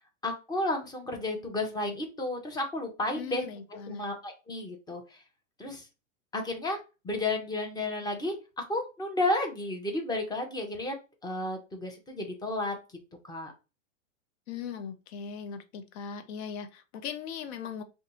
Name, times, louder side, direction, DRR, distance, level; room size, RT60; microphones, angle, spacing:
voice 1, 0.2-3.5 3.9-5.2 5.6-5.9 6.3-11.0 11.2-12.7 13.2-13.5, left 2 dB, 10° left, 0.8 m, -32 dB
voice 2, 3.1-4.1 14.5-17.8, left 7 dB, 55° left, 0.8 m, -39 dB
2.7 x 2.4 x 4.0 m
hypercardioid pair, 115°, 39 cm